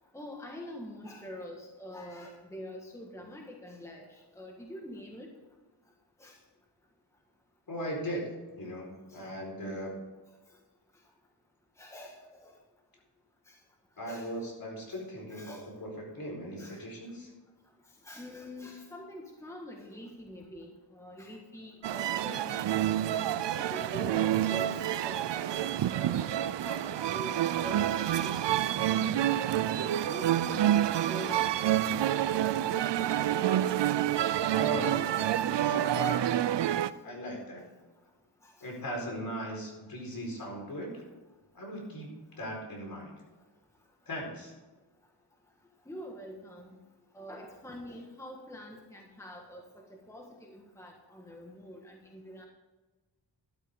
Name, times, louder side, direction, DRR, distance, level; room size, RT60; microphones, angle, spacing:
voice 1, 0.1-5.3 6.2-6.4 9.1-9.2 11.8-12.6 13.5-13.6 14.1-14.4 14.9-15.0 15.3-15.6 16.6-16.8 18.0-22.6 23.1-25.7 26.0-28.4 29.8-31.5 37.3-37.7 38.4-38.7 45.8-46.8 47.1-52.5, left 1 dB, 5° left, 0 dB, 1.5 m, -45 dB
voice 2, 7.7-10.0 14.0-17.3 34.5-35.1 35.5-36.4 37.0-37.6 38.6-41.0 41.5-43.1 44.1-44.5, right 1 dB, 55° left, -1 dB, 4.7 m, -38 dB
sound 1, 21.8-36.9, right 11 dB, 80° right, 0.5 m, -28 dB
12.5 x 12.0 x 3.7 m, 1.2 s
wide cardioid pair, 160°, 42 cm